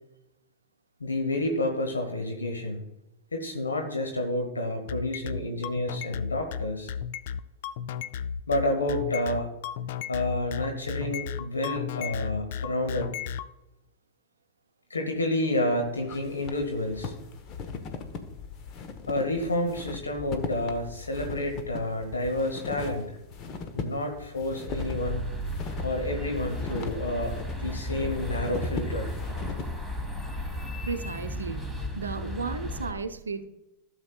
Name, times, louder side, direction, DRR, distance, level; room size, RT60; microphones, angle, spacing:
voice 1, 1.0-2.8 3.3-6.9 8.5-9.5 10.1-13.1 14.9-17.1 19.1-23.2 23.7-25.3 25.8-29.1, left 1 dB, 75° left, 3 dB, 1.2 m, -29 dB
sound 1, 4.9-13.5, left 8 dB, 55° left, 0.4 m, -34 dB
sound 2, 15.7-29.7, left 5 dB, 35° left, 1.1 m, -39 dB
sound 3, 24.7-32.9, left 1 dB, 5° left, 1.5 m, -34 dB
voice 2, 30.9-33.4, right 5 dB, 75° right, 8 dB, 0.7 m, -34 dB
15.5 x 7.3 x 2.4 m, 0.90 s
figure-of-eight pair, 90°, 0 cm